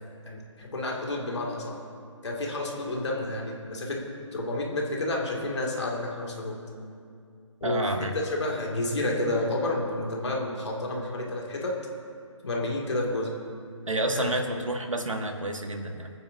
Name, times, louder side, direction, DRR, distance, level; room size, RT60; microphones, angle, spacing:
voice 1, 0.3-1.8 2.2-4.0 4.3-6.6 7.6-7.9 8.4-11.7 12.4-13.3 14.1-14.3, left 2 dB, 60° left, -1 dB, 2.4 m, -30 dB
voice 2, 7.6-8.1 13.9-16.1, right 1 dB, 75° right, 5 dB, 1.6 m, -29 dB
26.5 x 9.5 x 2.7 m, 2.3 s
figure-of-eight pair, 145°, 17 cm